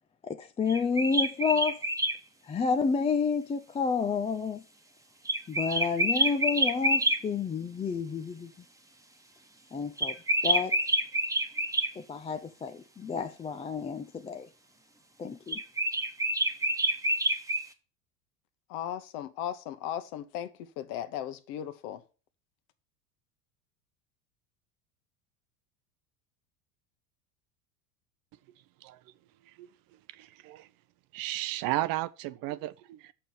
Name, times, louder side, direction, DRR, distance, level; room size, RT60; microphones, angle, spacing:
voice 1, 0.2-1.8 2.5-4.6 5.5-8.5 9.7-10.2 10.4-10.8 12.0-14.5 15.2-15.6, left 5 dB, 15° left, 0.4 m, -30 dB
sound 1, 0.7-2.2 5.2-7.2 10.0-11.9 15.5-17.7, right 1 dB, 5° right, 1.1 m, -27 dB
voice 2, 18.7-20.5 20.8-22.0, left 11 dB, 60° left, 1.2 m, -36 dB
voice 3, 30.2-30.7 31.1-33.1, right 16 dB, 45° right, 0.7 m, -33 dB
6.7 x 5.7 x 6.2 m
hypercardioid pair, 85°, 47 cm